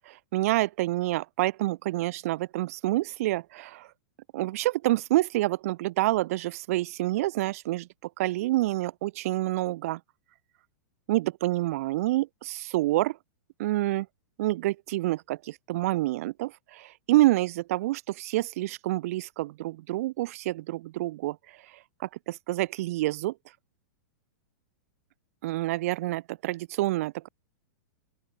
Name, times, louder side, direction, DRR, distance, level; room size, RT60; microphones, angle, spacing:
voice 1, 0.1-3.9 4.3-7.9 8.2-10.0 11.1-13.2 13.6-14.1 14.4-21.4 22.0-23.3 25.4-27.3, right 17 dB, 50° right, 0.6 m, -27 dB
open air
supercardioid pair, 160°, 10 cm